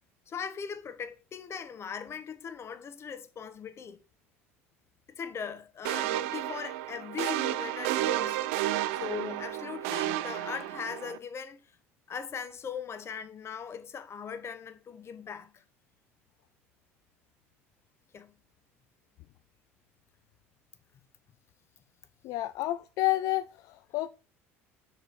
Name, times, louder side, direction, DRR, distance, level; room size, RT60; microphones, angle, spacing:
voice 1, 0.3-4.0 5.2-8.4 8.9-11.6 12.1-15.6 18.1-18.3, left 7 dB, 35° left, 1.2 m, -39 dB
sound 1, 5.8-11.2, right 14 dB, 70° right, 0.5 m, -32 dB
voice 2, 22.2-24.1, left 16 dB, 60° left, 0.4 m, -30 dB
6.4 x 5.1 x 4.8 m
hypercardioid pair, 70°, 7 cm